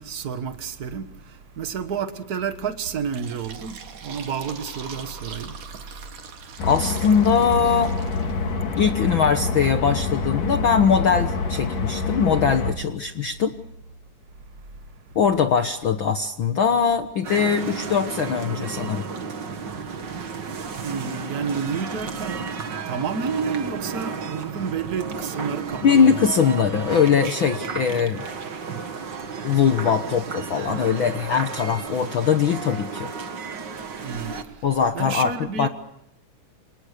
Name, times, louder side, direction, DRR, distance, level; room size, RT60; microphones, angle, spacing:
voice 1, 0.0-6.1 20.8-22.6 22.8-26.2 34.0-34.7 34.9-35.7, right 6 dB, 80° right, 0.8 m, -30 dB
Fill (with liquid), 2.8-8.5, right 6 dB, 65° right, 4.0 m, -42 dB
voice 2, 6.6-7.9 8.8-13.5 15.1-19.0 25.8-28.2 29.4-33.1 34.6-35.7, left 6 dB, 90° left, 1.1 m, -21 dB
sound 1, 6.6-12.7, left 4 dB, 65° left, 4.7 m, -26 dB
sound 2, 17.2-34.4, right 5 dB, 40° right, 1.8 m, -33 dB
28.5 x 26.5 x 6.7 m
omnidirectional pair, 4.0 m